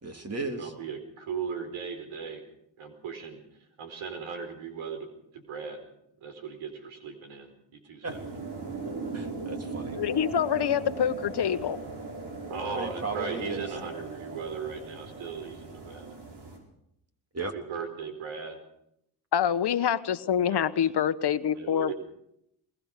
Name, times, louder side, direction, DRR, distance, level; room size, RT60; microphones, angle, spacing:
voice 1, 0.0-0.7 8.0-8.1 9.1-10.0 12.7-13.6 17.3-17.5, right 3 dB, 30° right, 5 dB, 3.5 m, -35 dB
voice 2, 0.6-2.4 2.8-3.4 3.8-5.8 6.2-7.5 7.8-8.2 12.5-16.1 17.4-18.6 20.3-20.9 21.5-21.9, right 5 dB, 85° right, 7 dB, 4.8 m, -37 dB
sound 1, 8.1-16.6, right 3 dB, 55° right, 7.4 m, -39 dB
voice 3, 9.9-11.8 19.3-21.9, left 9 dB, 55° left, 13 dB, 1.2 m, -26 dB
22.0 x 21.0 x 6.7 m, 0.77 s
cardioid pair, 70°, 48 cm